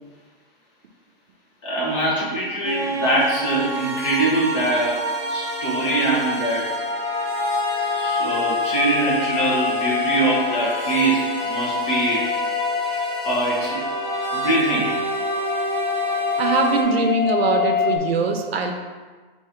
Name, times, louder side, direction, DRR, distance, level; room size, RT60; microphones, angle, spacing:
voice 1, 1.6-5.0 5.3-6.7 7.9-12.2 13.2-13.8 14.3-14.9, right 1 dB, 30° left, -6 dB, 1.1 m, -23 dB
sound 1, 2.6-16.8, right 1 dB, 30° right, 0.5 m, -28 dB
sound 2, 4.8-18.0, left 7 dB, 60° left, 0.8 m, -28 dB
voice 2, 16.4-18.7, right 3 dB, 80° right, 4 dB, 0.7 m, -22 dB
3.7 x 2.7 x 4.4 m, 1.4 s
hypercardioid pair, 175°, 30 cm